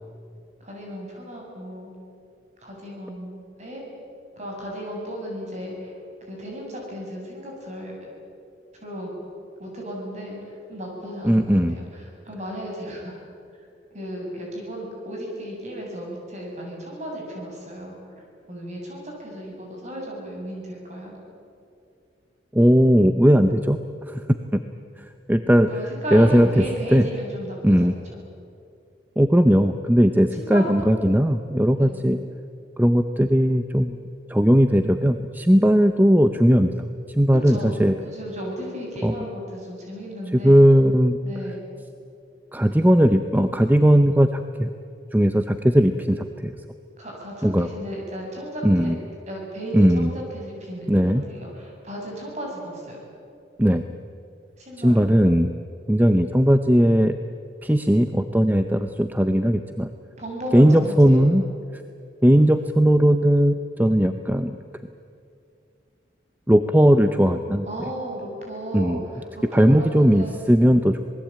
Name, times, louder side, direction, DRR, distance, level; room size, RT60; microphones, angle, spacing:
voice 1, 0.6-1.9 2.6-3.8 4.4-5.9 6.3-8.1 8.8-9.1 9.6-10.4 10.7-11.4 11.9-13.1 13.9-17.9 18.5-21.1 25.7-28.0 30.3-30.9 31.8-32.0 37.5-37.7 38.0-40.6 41.2-41.6 47.0-48.9 49.3-53.0 54.6-55.1 60.2-61.3 67.7-70.3, equal, 40° right, -1 dB, 7.8 m, -34 dB
voice 2, 11.2-11.8 22.5-23.8 24.1-24.2 24.5-24.6 25.3-25.7 26.1-26.6 26.9-27.1 27.6-27.9 29.2-32.2 32.8-33.9 34.3-36.7 37.1-38.0 39.0-39.1 40.4-41.2 42.5-44.7 45.1-46.5 47.4-47.7 48.6-49.0 49.7-50.1 50.9-51.2 53.6-53.8 54.8-55.5 55.9-57.1 57.6-59.9 60.5-61.4 61.7-61.8 62.2-64.6 66.5-67.7 68.7-69.0 69.5-71.0, equal, 10° right, 8 dB, 0.7 m, -18 dB
27.0 x 20.0 x 8.8 m, 2.4 s
head